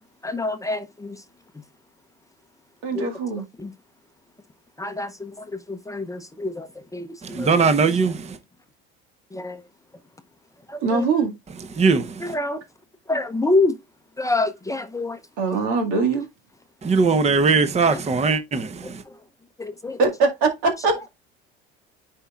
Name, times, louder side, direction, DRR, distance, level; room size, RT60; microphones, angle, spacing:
voice 1, 0.2-1.2 2.9-3.1 3.6-3.7 4.8-7.5 9.3-9.6 10.7-11.0 12.2-12.6 13.1-13.8 14.2-15.2 17.9-18.0 19.6-20.0, left 2 dB, 10° left, 0.7 m, -26 dB
voice 2, 2.8-3.4 10.8-11.3 15.4-16.3 20.0-21.1, right 4 dB, 70° right, 2.0 m, -22 dB
voice 3, 7.2-8.4 11.7-12.4 16.8-19.0, right 4 dB, 20° right, 0.9 m, -20 dB
9.9 x 4.5 x 2.4 m
hypercardioid pair, 80°, 29 cm